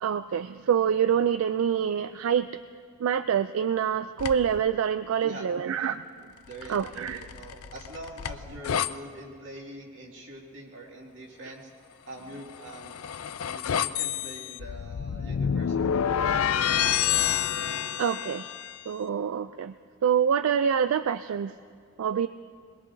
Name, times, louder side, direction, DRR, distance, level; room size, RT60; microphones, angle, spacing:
voice 1, 0.0-2.6 3.0-6.0 6.7-7.3 18.0-18.5 18.9-19.7 20.0-21.5 22.0-22.3, right 8 dB, 80° right, 12 dB, 0.3 m, -26 dB
sound 1, 4.2-4.6 6.5-8.9 12.4-18.8, left 8 dB, 85° left, 0.4 m, -29 dB
voice 2, 6.5-11.7 12.1-13.0 13.5-16.7, right 1 dB, 60° right, -2 dB, 2.4 m, -44 dB
22.0 x 21.0 x 2.7 m, 2.2 s
head